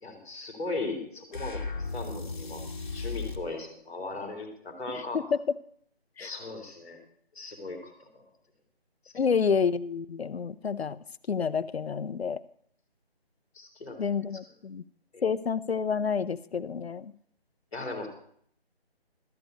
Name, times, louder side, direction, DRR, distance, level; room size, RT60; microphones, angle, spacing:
voice 1, 0.0-2.6 2.9-5.2 6.2-7.0 7.3-8.2 13.5-14.0 15.1-15.2 17.7-18.1, left 2 dB, 5° left, -13 dB, 1.0 m, -38 dB
sound 1, 1.3-3.5, left 4 dB, 50° left, 1.5 m, -35 dB
voice 2, 4.9-5.4 6.2-6.3 9.1-11.0 11.3-12.4 14.0-14.8 15.2-17.1, left 6 dB, 80° left, 14 dB, 0.7 m, -29 dB
13.0 x 5.2 x 8.1 m, 0.65 s
figure-of-eight pair, 175°, 31 cm